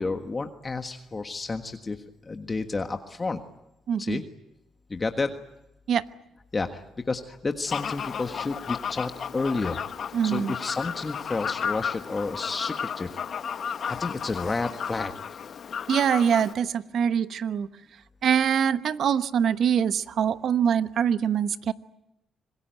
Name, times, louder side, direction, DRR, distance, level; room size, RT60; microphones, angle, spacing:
voice 1, 0.0-3.4 4.0-4.2 4.9-5.3 6.5-9.8 10.2-13.2 13.9-15.4, left 3 dB, 25° left, 6 dB, 1.5 m, -31 dB
voice 2, 3.9-4.2 5.9-6.0 10.1-10.5 15.9-17.7 18.2-21.7, right 8 dB, 65° right, 12 dB, 1.1 m, -24 dB
Fowl, 7.7-16.5, left 7 dB, 55° left, 1.2 m, -33 dB
26.0 x 20.5 x 9.3 m, 0.89 s
cardioid pair, 90°, 0 cm